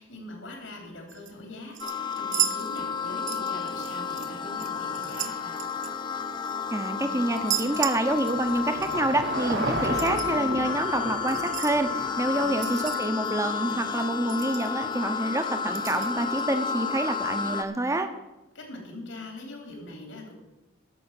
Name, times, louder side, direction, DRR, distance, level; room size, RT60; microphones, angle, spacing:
voice 1, 0.0-5.5 12.3-12.9 18.5-20.3, left 1 dB, 75° left, 2 dB, 3.7 m, -42 dB
sound 1, 1.1-1.3 1.7-3.0 3.3-4.3 4.6-6.6 7.3-8.5 8.8-9.0 9.8-10.3 11.3-11.8 12.6-13.3 13.7-13.8 14.0-14.1 14.3-14.9 15.7-16.4 17.1-17.2, right 11 dB, 40° right, 0.9 m, -34 dB
sound 2, 1.8-17.6, left 6 dB, 25° left, 0.7 m, -31 dB
voice 2, 6.7-18.1, right 1 dB, 15° right, 7 dB, 0.9 m, -27 dB
Car passing by / Engine, 7.1-13.5, right 2 dB, 55° right, 1.4 m, -35 dB
11.5 x 7.1 x 8.9 m, 1.0 s
head